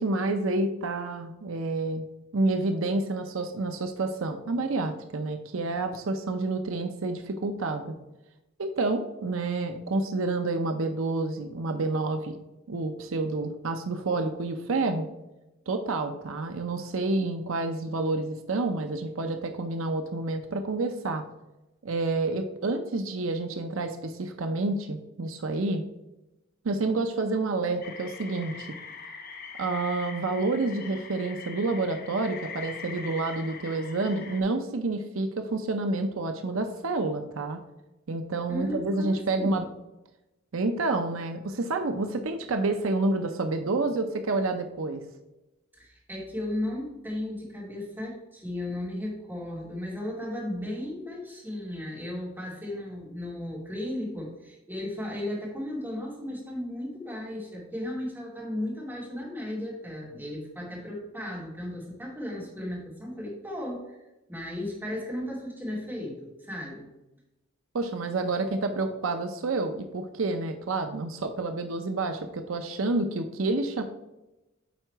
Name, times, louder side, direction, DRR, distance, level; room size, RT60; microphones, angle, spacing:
voice 1, 0.0-2.0 2.3-7.9 8.6-12.4 12.7-15.1 15.7-21.2 21.8-25.8 26.6-28.7 29.6-37.6 38.1-39.7 40.5-45.0 67.7-73.8, right 2 dB, 75° right, 6 dB, 0.6 m, -29 dB
sound 1, 27.8-34.4, left 5 dB, 45° left, 0.9 m, -42 dB
voice 2, 38.5-39.7 45.7-64.0 64.3-66.8, left 1 dB, 10° right, -5 dB, 2.5 m, -35 dB
9.2 x 3.9 x 4.5 m, 0.97 s
head